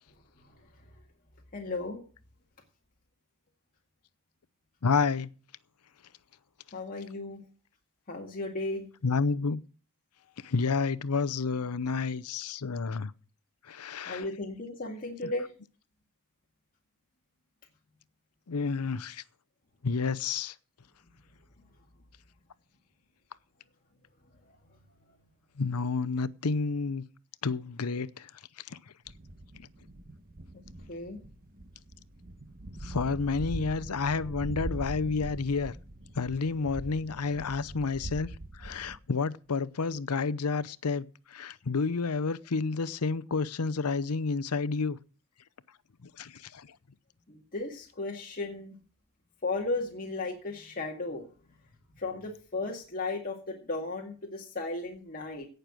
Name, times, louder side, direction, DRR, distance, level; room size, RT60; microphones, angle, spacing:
voice 1, 1.5-2.0 6.7-7.4 8.1-8.9 14.1-15.5 24.4-24.6 30.9-31.2 47.3-48.8 49.4-51.3 52.0-55.5, left 2 dB, 40° left, 2.0 m, -35 dB
voice 2, 4.8-5.3 9.0-9.6 10.4-13.1 13.7-14.2 18.5-19.2 19.8-20.5 25.6-27.0 27.4-28.3 28.7-28.8 32.8-35.7 36.2-38.3 38.6-41.1 41.3-45.0 46.2-46.7, left 4 dB, 90° left, 0.7 m, -30 dB
sound 1, 29.1-39.0, right 1 dB, 40° right, 1.2 m, -42 dB
17.0 x 6.7 x 6.0 m
head